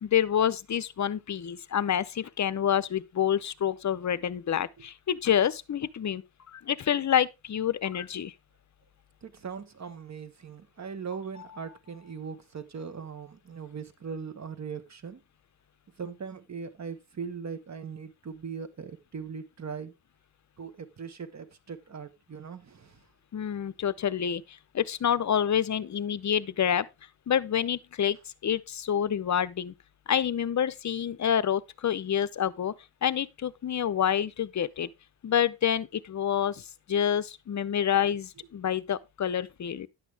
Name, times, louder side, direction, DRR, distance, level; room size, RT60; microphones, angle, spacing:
voice 1, 0.0-6.2 6.5-8.3 23.3-26.9 27.3-28.2 28.4-29.7 30.1-32.7 33.0-34.9 35.2-39.9, left 9 dB, 40° left, 0.6 m, -28 dB
voice 2, 9.2-15.2 16.0-19.9 20.6-23.0, right 6 dB, 40° right, 1.3 m, -40 dB
11.0 x 8.3 x 3.4 m
wide cardioid pair, 150°, 43 cm